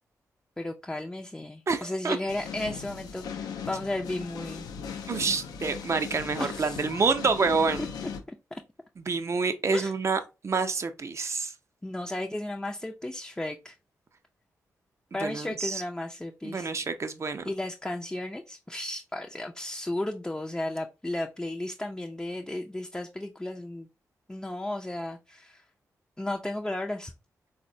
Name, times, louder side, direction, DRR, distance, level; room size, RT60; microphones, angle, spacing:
voice 1, 0.6-4.7 6.4-6.8 7.8-7.9 8.5-8.6 9.7-9.9 11.8-13.8 15.1-16.7 17.4-23.9 24.3-25.7 26.2-27.1, left 1 dB, 10° left, 0.3 m, -34 dB
voice 2, 1.7-2.2 5.1-7.9 9.1-11.5 15.2-15.8 16.4-17.5, right 4 dB, 45° right, 0.5 m, -28 dB
sound 1, 2.3-8.2, left 7 dB, 85° left, 0.3 m, -38 dB
3.6 x 2.1 x 2.6 m
supercardioid pair, 45°, 7 cm